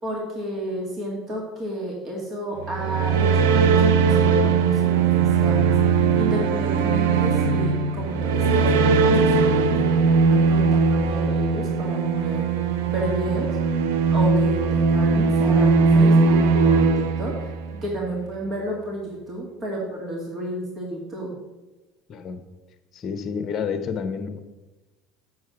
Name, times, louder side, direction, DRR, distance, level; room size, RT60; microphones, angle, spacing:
voice 1, 0.0-5.7 6.2-13.5 14.1-21.3, right 1 dB, 40° right, -2 dB, 2.2 m, -31 dB
sound 1, 2.6-17.8, right 5 dB, 85° right, 0.6 m, -19 dB
voice 2, 22.1-22.4 22.9-24.4, left 6 dB, 40° left, 9 dB, 0.9 m, -29 dB
7.5 x 4.6 x 5.9 m, 1.1 s
supercardioid pair, 90°, 0 cm